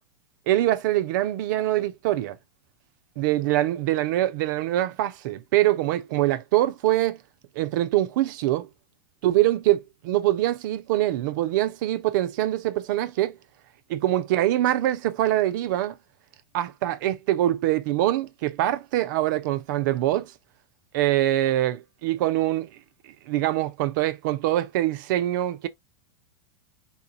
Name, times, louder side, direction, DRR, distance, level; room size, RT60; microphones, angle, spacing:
voice 1, 0.5-2.4 3.2-7.2 7.6-8.7 9.2-13.4 13.9-16.0 16.5-20.3 20.9-22.7 23.3-25.7, right 14 dB, 60° right, 0.6 m, -24 dB
3.8 x 2.4 x 2.7 m
hypercardioid pair, 100°, 12 cm